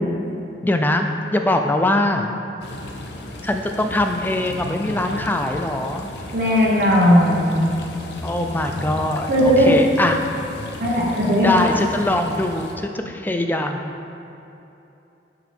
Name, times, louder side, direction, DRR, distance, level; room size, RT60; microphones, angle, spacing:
voice 1, 0.6-2.3 3.4-6.1 8.2-10.2 11.4-13.8, left 1 dB, 10° left, 4 dB, 0.3 m, -22 dB
sound 1, 2.6-12.8, left 2 dB, 65° left, 0.6 m, -34 dB
voice 2, 6.3-7.5 9.3-9.7 10.8-11.6, equal, 55° right, -6 dB, 1.4 m, -17 dB
7.2 x 6.0 x 3.4 m, 2.8 s
head